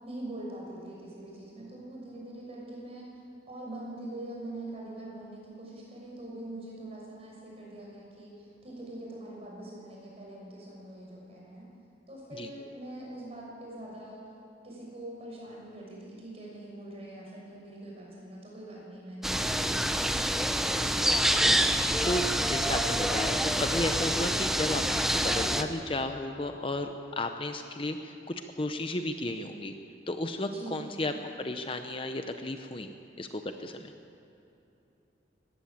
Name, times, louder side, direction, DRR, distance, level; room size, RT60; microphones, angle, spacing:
voice 1, 0.0-3.2 3.5-11.7 12.1-14.2 14.6-20.0 30.4-30.9, right 1 dB, 35° right, -3 dB, 6.3 m, -43 dB
sound 1, 19.2-25.6, equal, ahead, 0.8 m, -27 dB
voice 2, 21.3-29.7 30.1-31.1 31.4-33.9, left 1 dB, 30° left, 6 dB, 0.8 m, -34 dB
20.0 x 15.0 x 8.6 m, 3.0 s
head